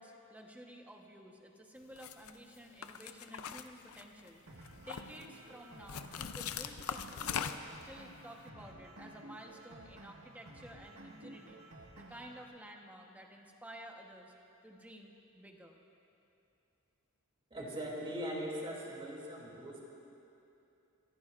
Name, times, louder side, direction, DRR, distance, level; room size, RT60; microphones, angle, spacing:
voice 1, 0.0-7.6 7.8-11.7 12.0-14.3 14.6-15.8, right 1 dB, 5° right, 1 dB, 1.1 m, -52 dB
sound 1, 2.0-2.3 2.8-4.3 4.6-5.3 5.9-7.8, left 8 dB, 75° left, 0.6 m, -40 dB
sound 2, 4.5-12.5, right 1 dB, 70° right, 1.7 m, -54 dB
voice 2, 17.5-19.8, equal, 25° right, -4 dB, 2.9 m, -40 dB
27.5 x 14.5 x 2.5 m, 2.7 s
head